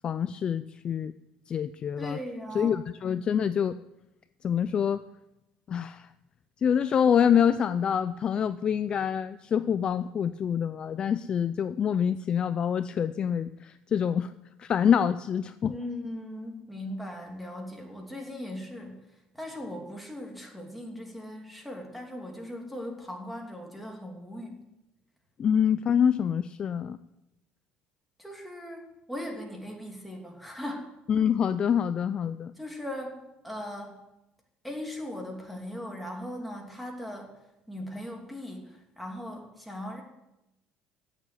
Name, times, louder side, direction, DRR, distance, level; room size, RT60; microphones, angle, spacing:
voice 1, 0.0-1.1 1.5-2.2 2.5-3.8 4.4-5.0 5.7-6.1 6.6-14.3 14.6-15.7 25.4-27.0 31.1-32.5, left 8 dB, 30° left, 12 dB, 0.4 m, -26 dB
voice 2, 2.0-2.8 15.7-19.0 19.3-24.6 28.2-30.9 32.6-33.2 33.4-34.0 34.6-37.3 37.7-40.0, left 1 dB, ahead, 1 dB, 2.9 m, -39 dB
16.5 x 7.3 x 9.9 m, 0.91 s
cardioid pair, 155°, 3 cm